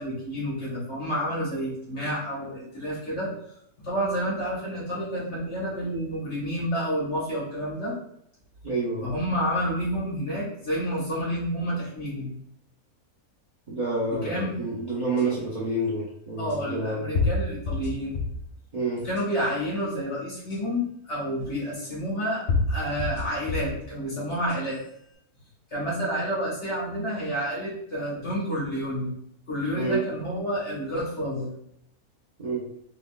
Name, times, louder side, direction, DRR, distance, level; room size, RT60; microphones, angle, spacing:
voice 1, 0.0-3.3 3.8-7.9 9.0-12.3 14.1-14.6 16.4-18.2 19.0-24.8 25.7-29.1 29.5-31.5, equal, 50° left, -7 dB, 1.6 m, -29 dB
voice 2, 8.6-9.1 13.7-17.3 18.7-19.0 29.7-30.0 32.4-32.6, right 2 dB, 35° right, -7 dB, 0.8 m, -28 dB
sound 1, 15.2-15.3 16.5-16.6 17.1-18.5 19.0-19.5 20.5-20.6 21.8-21.9 22.5-23.8 24.3-24.9, left 3 dB, 80° left, 1.3 m, -28 dB
3.6 x 3.2 x 2.3 m, 0.73 s
omnidirectional pair, 1.6 m